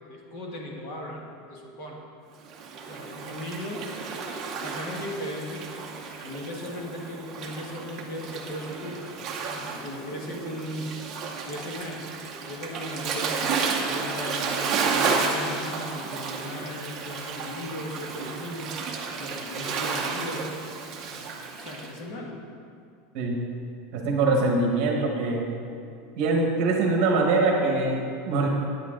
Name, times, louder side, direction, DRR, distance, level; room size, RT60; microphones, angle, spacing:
voice 1, 0.1-2.0 2.9-4.0 4.6-5.7 6.2-9.1 9.5-10.9 11.4-12.1 12.4-18.8 19.2-20.5 21.1-22.4, left 1 dB, 45° left, -1 dB, 1.4 m, -37 dB
Waves surf, 2.5-21.9, right 5 dB, 25° right, 0.7 m, -32 dB
voice 2, 23.9-25.4 26.1-28.5, right 3 dB, 45° right, 0 dB, 1.2 m, -23 dB
9.1 x 8.3 x 3.8 m, 2.4 s
supercardioid pair, 180°, 0 cm